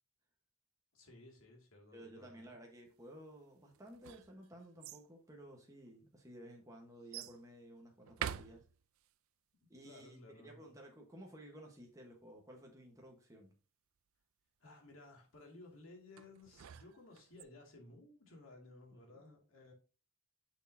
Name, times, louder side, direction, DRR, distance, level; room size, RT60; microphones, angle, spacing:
voice 1, 0.9-2.6 9.8-10.7 14.6-19.7, left 2 dB, 65° left, 2.3 m, -57 dB
voice 2, 1.9-8.6 9.7-13.6 19.1-19.2, right 1 dB, 15° right, 1.2 m, -55 dB
sound 1, 3.7-5.1 5.9-6.0 7.1-7.4 8.1-9.1 16.2-17.4, right 9 dB, 65° right, 0.4 m, -46 dB
6.4 x 6.4 x 2.7 m
head